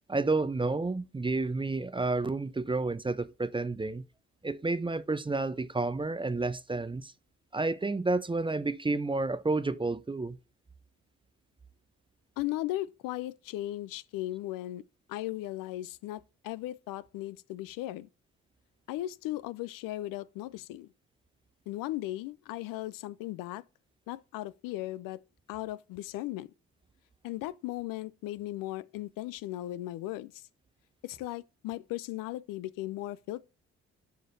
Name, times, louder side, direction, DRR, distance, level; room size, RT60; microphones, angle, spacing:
voice 1, 0.1-4.0 4.4-7.1 7.5-10.4, right 3 dB, 15° right, 0.5 m, -30 dB
voice 2, 12.4-14.8 15.1-18.1 18.9-20.9 21.7-23.6 24.1-25.2 25.5-26.5 27.2-30.5 31.0-33.4, left 16 dB, 70° left, 0.5 m, -37 dB
11.5 x 5.1 x 2.6 m
hypercardioid pair, 45°, 35 cm